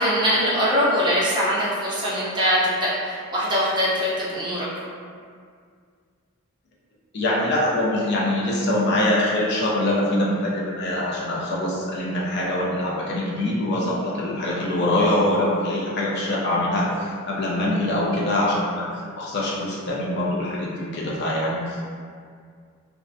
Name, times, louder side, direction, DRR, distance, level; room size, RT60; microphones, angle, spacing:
voice 1, 0.0-4.7, equal, 20° right, -8 dB, 0.5 m, -22 dB
voice 2, 7.1-21.9, left 1 dB, 50° left, -5 dB, 0.4 m, -24 dB
2.4 x 2.1 x 2.5 m, 2.1 s
head